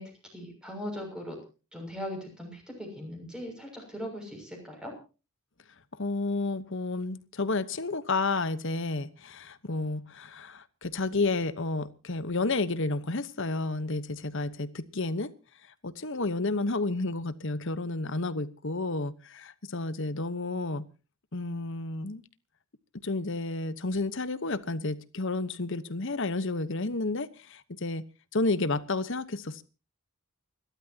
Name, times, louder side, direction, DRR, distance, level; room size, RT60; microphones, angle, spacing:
voice 1, 0.0-1.4 1.7-4.9, equal, 5° right, 2 dB, 6.6 m, -39 dB
voice 2, 6.0-15.3 15.8-20.9 21.3-22.2 23.0-28.0 28.3-29.6, left 3 dB, 60° left, 15 dB, 1.1 m, -31 dB
29.0 x 13.0 x 2.9 m, 0.34 s
head